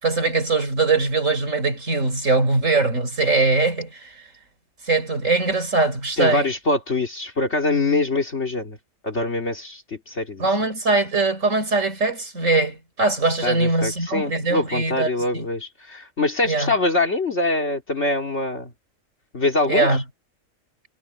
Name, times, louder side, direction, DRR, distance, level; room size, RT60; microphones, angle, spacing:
voice 1, 0.0-4.1 4.9-6.5 10.4-15.5 16.4-16.7 19.7-20.0, right 3 dB, 70° right, 5.1 m, -21 dB
voice 2, 6.2-8.8 9.0-10.5 13.4-18.7 19.3-20.0, left 2 dB, 60° left, 3.1 m, -24 dB
omnidirectional pair, 1.4 m